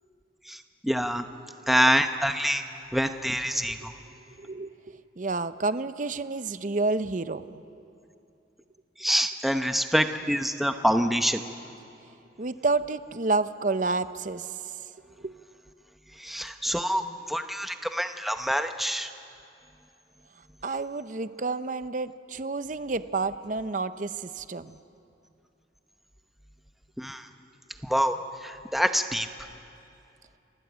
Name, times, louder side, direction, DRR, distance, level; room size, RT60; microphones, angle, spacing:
voice 1, 0.8-1.3 1.7-2.6 2.9-3.9 9.0-11.4 16.2-19.1 27.0-27.2 27.8-28.2 28.4-29.3, equal, ahead, 7 dB, 0.8 m, -26 dB
voice 2, 4.4-7.6 12.4-14.8 15.2-15.3 20.6-24.8, right 3 dB, 45° right, 12 dB, 0.7 m, -30 dB
28.5 x 16.0 x 8.1 m, 2.7 s
head